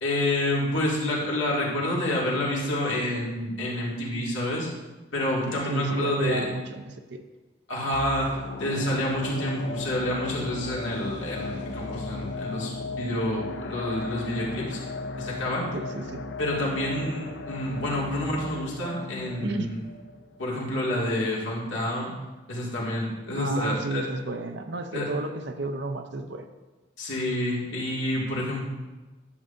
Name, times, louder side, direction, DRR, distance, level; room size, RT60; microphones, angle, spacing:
voice 1, 0.0-4.7 5.1-6.5 7.7-14.8 15.2-15.7 16.4-19.8 20.4-22.1 22.5-24.1 24.9-25.1 27.0-28.6, left 1 dB, 75° left, -5 dB, 2.2 m, -28 dB
voice 2, 5.7-7.2 15.7-16.2 18.1-18.3 19.4-19.7 23.4-26.5, right 2 dB, 60° right, 7 dB, 0.6 m, -31 dB
sound 1, 7.9-21.0 21.3-21.4, left 3 dB, 55° left, 0.4 m, -36 dB
11.0 x 7.0 x 2.6 m, 1.2 s
head